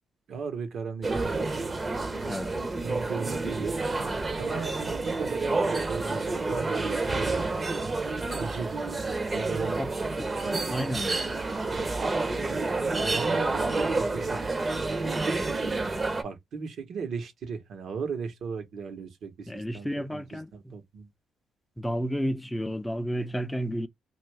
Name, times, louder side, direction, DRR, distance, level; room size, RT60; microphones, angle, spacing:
voice 1, 0.3-1.5 2.8-3.8 4.4-6.2 6.5-7.0 8.4-8.8 9.3-9.8 10.4-11.3 12.9-14.5 16.2-21.1, right 5 dB, 65° right, 1.1 m, -36 dB
sound 1, 1.0-16.2, right 3 dB, 30° right, 0.8 m, -29 dB
voice 2, 10.2-11.1 19.5-20.7 21.8-23.9, equal, 5° left, 0.6 m, -32 dB
2.6 x 2.5 x 3.3 m
cardioid pair, 75°, 0 cm